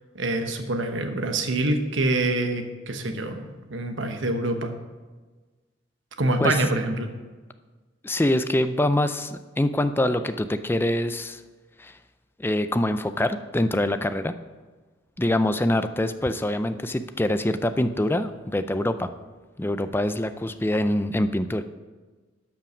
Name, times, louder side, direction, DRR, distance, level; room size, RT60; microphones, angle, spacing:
voice 1, 0.1-4.7 6.2-7.1, right 2 dB, 65° right, 6 dB, 1.1 m, -26 dB
voice 2, 8.0-11.4 11.8-12.0 12.4-14.3 15.2-19.1 19.6-21.6, left 1 dB, 10° left, 10 dB, 0.4 m, -24 dB
12.0 x 5.8 x 6.2 m, 1.3 s
head